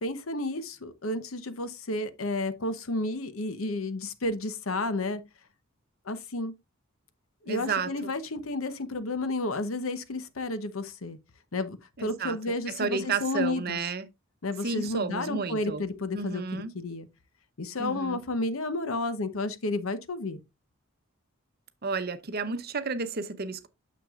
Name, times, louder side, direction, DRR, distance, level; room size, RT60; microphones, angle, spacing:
voice 1, 0.0-5.2 6.0-6.5 7.4-11.2 11.5-13.8 14.4-17.1 17.6-20.4, left 2 dB, 85° left, 0.9 m, -31 dB
voice 2, 7.5-8.1 12.0-12.4 12.8-14.1 14.6-15.8 16.1-16.7 17.8-18.2 21.8-23.7, right 4 dB, 50° right, 0.8 m, -32 dB
9.1 x 6.7 x 2.4 m
head